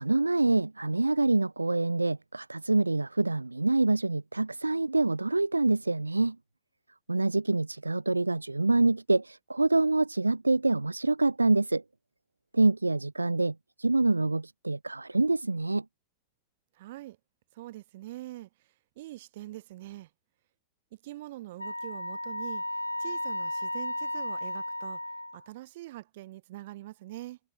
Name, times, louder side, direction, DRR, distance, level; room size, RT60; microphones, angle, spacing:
voice 1, 0.0-6.4 7.1-11.8 12.5-15.8, right 2 dB, 80° right, 0.4 m, -26 dB
voice 2, 16.8-17.2 17.5-18.5 19.0-20.1 21.0-22.6 23.0-25.0 25.3-27.4, right 16 dB, 55° right, 3.9 m, -43 dB
Wind instrument woodwind instrument, 21.6-25.5, left 1 dB, 85° left, 0.6 m, -34 dB
figure-of-eight pair, 90°, 0 cm